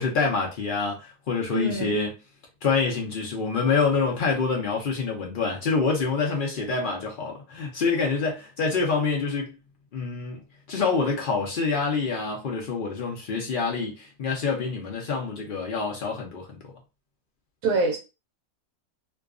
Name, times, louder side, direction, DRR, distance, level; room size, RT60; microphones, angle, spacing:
voice 1, 0.0-2.1 2.6-9.5 9.9-10.4 10.7-16.7, left 4 dB, 75° left, 0.4 m, -26 dB
voice 2, 1.5-2.0 17.6-18.0, right 3 dB, 70° right, 0.9 m, -25 dB
2.5 x 2.3 x 2.3 m
omnidirectional pair, 1.6 m